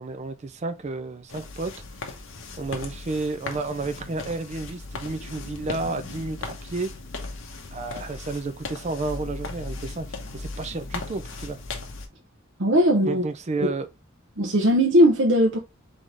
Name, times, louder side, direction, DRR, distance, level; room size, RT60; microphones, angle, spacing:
voice 1, 0.0-1.7 2.6-6.9 7.7-10.1 10.3-11.6 13.0-13.9, right 3 dB, 35° right, 0.4 m, -31 dB
sound 1, 1.3-12.1, left 3 dB, 70° left, 0.9 m, -37 dB
voice 2, 12.6-13.2 14.4-15.6, equal, 65° right, 0.8 m, -18 dB
3.9 x 3.7 x 3.3 m
head